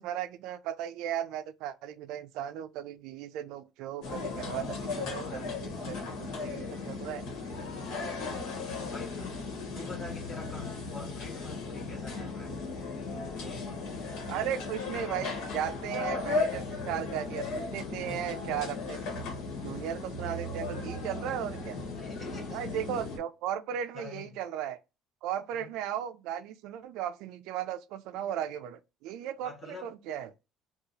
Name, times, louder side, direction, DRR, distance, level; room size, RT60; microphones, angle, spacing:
voice 1, 0.0-7.3 14.3-19.0 19.6-21.8 22.5-24.8 25.2-30.3, right 10 dB, 70° right, 0.4 m, -36 dB
sound 1, 4.0-23.2, left 3 dB, 75° left, 1.3 m, -36 dB
voice 2, 8.9-9.4 9.7-12.6 13.3-13.8 22.0-22.7 23.9-24.4 25.6-25.7 29.4-29.9, left 3 dB, 20° left, 1.1 m, -46 dB
2.8 x 2.3 x 3.8 m
cardioid pair, 175°, 0 cm